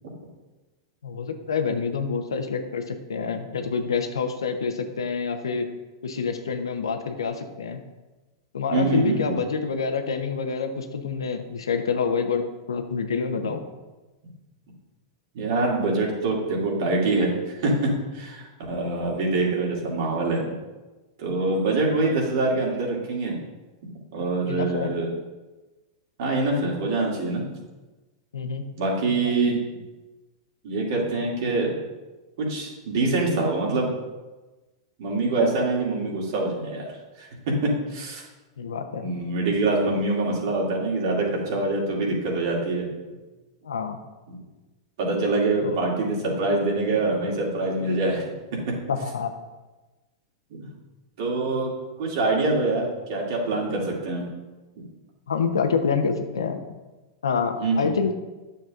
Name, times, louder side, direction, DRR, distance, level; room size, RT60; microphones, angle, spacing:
voice 1, 1.0-5.7 6.0-7.8 8.5-13.6 18.7-18.9 24.4-24.9 28.3-28.6 38.6-39.1 43.6-44.0 45.6-45.8 48.9-49.3 55.3-56.8 57.2-58.1, left 5 dB, 85° left, 6 dB, 0.8 m, -27 dB
voice 2, 8.7-9.4 15.3-20.5 21.2-23.4 24.1-25.1 26.2-27.6 28.8-29.6 30.6-31.7 32.4-33.9 35.0-36.9 37.2-38.2 39.0-42.9 44.3-44.4 45.0-48.3 48.6-48.7 50.5-50.7 51.2-51.7 52.0-54.3 57.6-57.9, right 2 dB, 65° right, -2 dB, 2.4 m, -25 dB
9.4 x 6.8 x 2.5 m, 1.2 s
hypercardioid pair, 110°, 2 cm